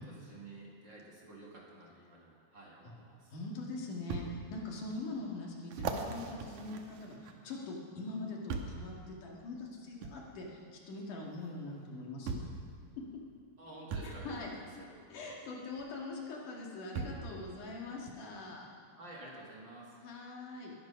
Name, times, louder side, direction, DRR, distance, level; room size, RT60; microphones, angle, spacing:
voice 1, 0.0-3.3 13.6-14.9 19.0-20.0, right 2 dB, 40° right, -4 dB, 2.5 m, -51 dB
sound 1, 3.0-3.1 4.1-4.3 4.9-5.0 5.7-7.6 8.5-8.8 10.0-10.2 11.4-11.5 12.3-12.6 13.9-14.1 15.8-15.9 16.9-17.3 18.1-18.2, right 5 dB, 75° right, 2.4 m, -39 dB
voice 2, 3.3-12.4 14.0-14.5 15.1-18.7 20.0-20.7, left 2 dB, 80° left, -2 dB, 3.5 m, -43 dB
20.5 x 9.4 x 5.8 m, 2.3 s
omnidirectional pair, 3.6 m